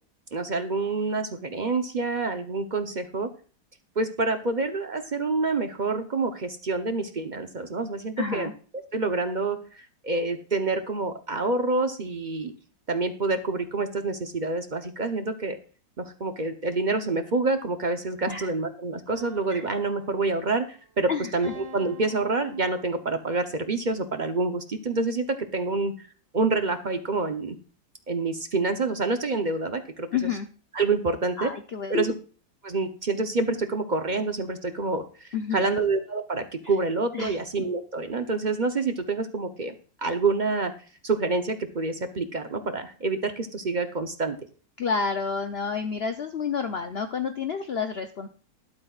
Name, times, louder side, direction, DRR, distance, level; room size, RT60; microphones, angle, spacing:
voice 1, 0.3-3.3 4.0-8.5 8.9-12.5 12.9-15.6 16.0-26.1 26.3-27.6 28.1-30.1 30.7-31.5 31.9-32.1 32.6-39.7 40.0-40.7 41.0-44.4, right 3 dB, 45° right, 7 dB, 0.6 m, -27 dB
voice 2, 8.2-8.5 18.3-18.5 19.5-19.7 21.1-21.4 30.1-30.5 31.4-32.1 35.3-35.7 36.6-36.8 37.1-37.4 44.8-48.3, left 6 dB, 70° left, 7 dB, 0.6 m, -29 dB
sound 1, 19.1-20.7 21.4-23.4, right 1 dB, 65° right, 2.4 m, -46 dB
12.0 x 12.0 x 2.4 m, 0.40 s
omnidirectional pair, 2.0 m